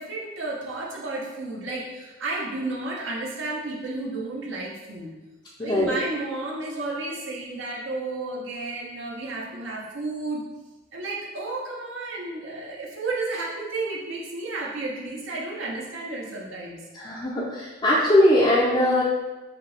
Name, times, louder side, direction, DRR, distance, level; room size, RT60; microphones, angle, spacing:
voice 1, 0.0-5.1 5.6-10.4 10.9-16.8, right 2 dB, 65° right, -3 dB, 0.8 m, -32 dB
voice 2, 5.6-5.9 16.9-19.0, left 1 dB, 25° left, -6 dB, 0.5 m, -20 dB
5.1 x 2.8 x 3.3 m, 1.2 s
head